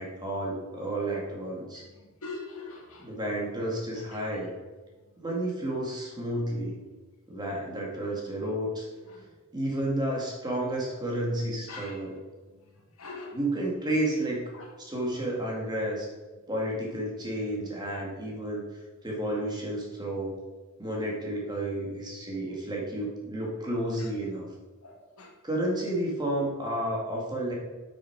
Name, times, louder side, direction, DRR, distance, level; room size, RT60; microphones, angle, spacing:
voice 1, 0.0-1.8 3.0-4.5 5.2-6.8 7.3-8.9 9.5-12.1 13.3-14.5 14.8-16.1 16.5-18.6 19.0-20.4 20.8-24.5 25.4-27.5, right 1 dB, 20° right, -3 dB, 2.2 m, -31 dB
voice 2, 1.7-3.2 3.9-4.4 4.9-5.2 9.0-9.4 9.7-9.8 11.7-12.1 12.5-13.4 14.5-14.7 16.3-16.4 19.2-19.3 23.9-24.1 24.8-25.4, left 3 dB, 85° left, 2 dB, 1.7 m, -45 dB
8.4 x 6.5 x 4.8 m, 1.2 s
head